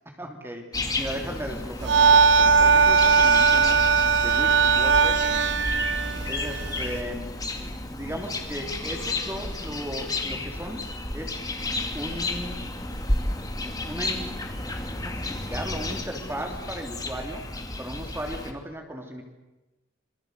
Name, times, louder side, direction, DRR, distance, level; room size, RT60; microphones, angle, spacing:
voice 1, 0.1-0.6 1.0-3.9 4.2-5.3 6.3-11.4 11.9-12.6 13.8-14.4 14.6-17.5 17.8-19.2, equal, 10° right, 3 dB, 3.1 m, -36 dB
sound 1, 0.7-18.5, left 2 dB, 20° left, 2.5 m, -32 dB
sound 2, 1.8-7.0, right 5 dB, 65° right, 1.1 m, -19 dB
27.0 x 23.5 x 8.1 m, 1.1 s
head